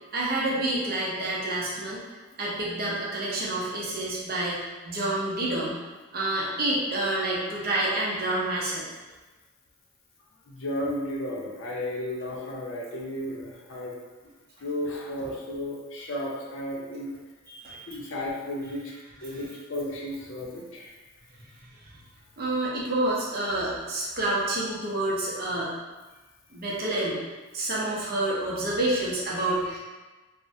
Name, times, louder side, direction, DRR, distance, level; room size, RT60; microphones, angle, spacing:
voice 1, 0.1-2.0 2.4-5.8 6.1-8.9 15.2-15.3 17.5-18.1 19.3-19.4 21.8-22.0 22.4-25.7 26.5-27.2 27.5-29.8, right 1 dB, 50° right, -5 dB, 0.6 m, -28 dB
voice 2, 10.5-13.9 14.6-17.1 17.9-18.8 19.2-20.9, left 1 dB, 75° left, -3 dB, 0.6 m, -33 dB
3.3 x 2.1 x 2.6 m, 1.2 s
head